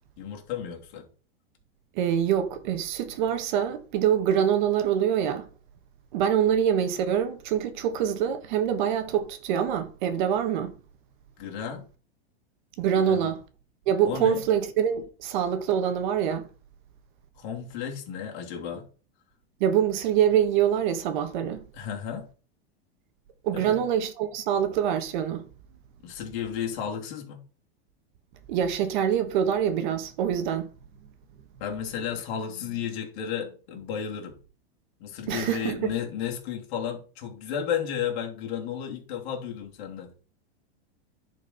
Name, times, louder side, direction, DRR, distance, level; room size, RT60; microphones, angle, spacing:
voice 1, 0.2-1.1 11.4-11.9 12.9-13.3 14.0-14.4 17.4-18.9 21.7-22.3 23.5-23.8 26.0-27.4 31.6-34.4 35.0-40.1, left 8 dB, 45° left, 2.9 m, -33 dB
voice 2, 1.9-5.5 6.1-10.7 12.8-13.4 13.9-16.5 19.6-21.6 23.4-25.5 28.5-30.7 35.3-35.9, right 9 dB, 45° right, 1.4 m, -25 dB
10.5 x 4.8 x 5.7 m
supercardioid pair, 170°, 33 cm